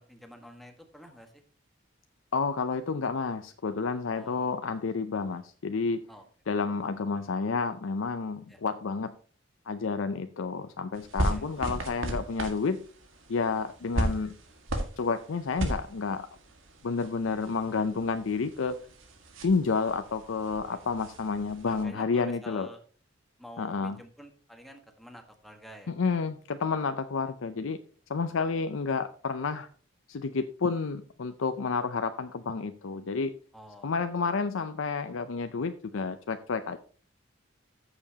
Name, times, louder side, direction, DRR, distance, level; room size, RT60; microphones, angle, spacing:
voice 1, 0.0-1.4 4.1-4.6 6.1-6.2 8.5-8.6 11.3-11.4 20.6-20.8 21.6-22.8 23.4-25.9 33.5-34.0, equal, ahead, 4 dB, 1.4 m, -49 dB
voice 2, 2.3-6.0 6.5-9.1 9.7-12.8 13.3-14.3 15.0-16.3 16.8-18.8 19.4-22.7 23.6-24.0 25.9-27.8 28.1-29.7 30.1-33.3 33.8-36.8, left 4 dB, 85° left, 8 dB, 0.6 m, -30 dB
sound 1, 10.9-21.8, right 1 dB, 90° right, 1.8 m, -36 dB
14.0 x 7.0 x 2.9 m, 0.41 s
head